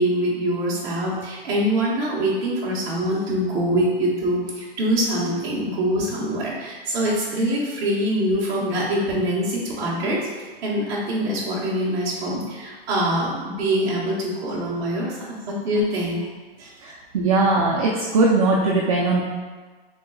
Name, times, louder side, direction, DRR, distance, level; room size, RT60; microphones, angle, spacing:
voice 1, 0.0-10.3 10.6-16.2 16.6-16.7, equal, 15° right, -8 dB, 0.7 m, -24 dB
voice 2, 16.8-19.2, right 3 dB, 35° right, -3 dB, 0.4 m, -20 dB
5.3 x 3.8 x 2.3 m, 1.4 s
supercardioid pair, 175°, 30 cm